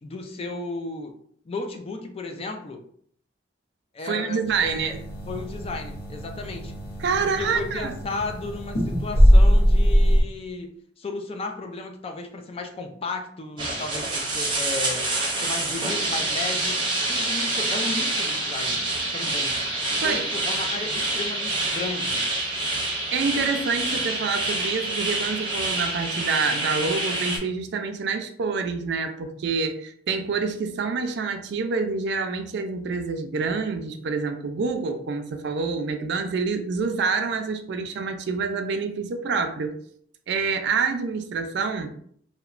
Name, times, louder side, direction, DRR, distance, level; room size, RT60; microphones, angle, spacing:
voice 1, 0.0-1.2 1.5-2.8 3.9-5.0 5.3-6.7 7.2-15.1 15.4-16.8 17.1-18.9 19.1-19.6 19.9-22.3, left 3 dB, 35° left, 5 dB, 0.3 m, -34 dB
voice 2, 4.0-5.0 7.0-7.9 20.0-20.3 23.1-39.8 40.3-41.9, right 4 dB, 70° right, 7 dB, 0.4 m, -27 dB
sound 1, 4.5-10.2, equal, 60° left, 0.7 m, -21 dB
sound 2, 13.6-27.4, right 2 dB, 25° right, 0.6 m, -27 dB
2.9 x 2.1 x 2.4 m, 0.62 s
head